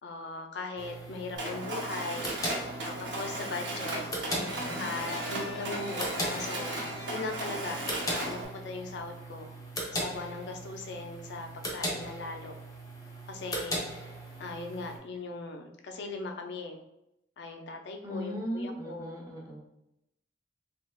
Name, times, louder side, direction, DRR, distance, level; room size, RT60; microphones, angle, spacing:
voice 1, 0.0-2.3 2.8-4.0 4.8-6.7 7.1-9.5 9.9-12.5 13.3-13.8 14.4-16.8 17.4-19.2, left 3 dB, 65° left, 4 dB, 0.4 m, -39 dB
sound 1, 0.8-15.0, equal, 20° left, 0.6 m, -39 dB
Mechanisms, 1.4-8.5, right 2 dB, 75° right, 0.7 m, -36 dB
sound 2, 4.2-7.5, left 2 dB, 85° left, 0.8 m, -44 dB
voice 2, 4.3-4.8 18.0-19.6, equal, 20° right, -3 dB, 0.6 m, -37 dB
3.3 x 2.8 x 2.2 m, 0.84 s
head